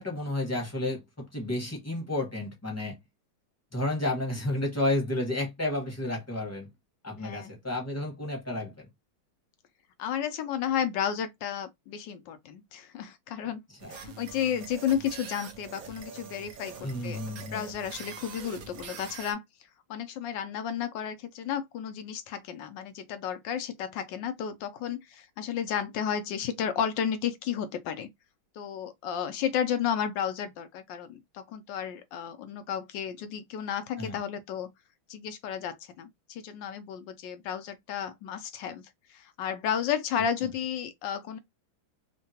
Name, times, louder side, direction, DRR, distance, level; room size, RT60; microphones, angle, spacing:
voice 1, 0.0-3.0 3.7-6.7 7.0-8.9 13.8-13.9 16.8-17.6 34.0-34.2, left 1 dB, 10° left, 0.8 m, -31 dB
voice 2, 7.2-7.5 10.0-13.6 13.9-19.4 19.9-28.1 28.6-34.7 35.1-38.8 39.1-41.4, left 8 dB, 75° left, 1.2 m, -32 dB
sound 1, 13.8-19.3, right 6 dB, 75° right, 0.8 m, -44 dB
3.7 x 2.2 x 2.7 m
omnidirectional pair, 2.2 m